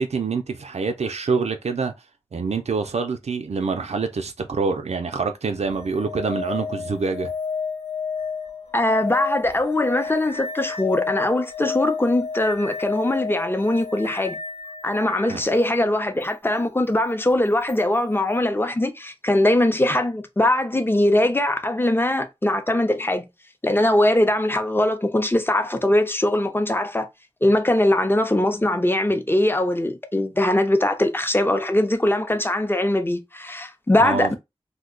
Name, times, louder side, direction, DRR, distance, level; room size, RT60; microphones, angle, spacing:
voice 1, 0.0-1.9 2.3-7.3 15.3-15.4 34.0-34.3, right 4 dB, 85° right, 0.4 m, -26 dB
sound 1, 5.5-15.4 17.7-17.8, left 5 dB, 80° left, 0.7 m, -31 dB
voice 2, 8.7-14.4 14.8-23.3 23.6-27.1 27.4-34.4, left 1 dB, 20° left, 0.6 m, -21 dB
2.6 x 2.2 x 3.7 m
wide cardioid pair, 50°, 11 cm